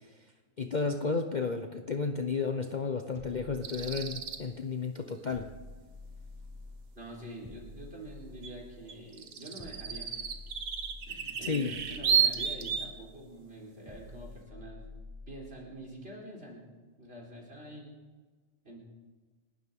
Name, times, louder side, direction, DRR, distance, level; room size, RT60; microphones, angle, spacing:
voice 1, 0.6-5.5 11.4-11.7, left 4 dB, 40° left, 5 dB, 0.8 m, -32 dB
sound 1, 3.1-4.5 5.3-6.9 7.4-8.8 9.6-11.2 11.7-13.1 13.9-15.5, left 2 dB, 25° right, 4.4 m, -49 dB
sound 2, 3.6-4.4 8.4-8.5 8.9-12.9, right 7 dB, 90° right, 1.6 m, -32 dB
voice 2, 6.9-10.5 11.1-14.8 15.3-16.6 17.0-17.9 18.6-18.8, right 1 dB, 45° right, -2 dB, 4.3 m, -46 dB
29.0 x 12.5 x 3.7 m, 1.4 s
omnidirectional pair, 1.4 m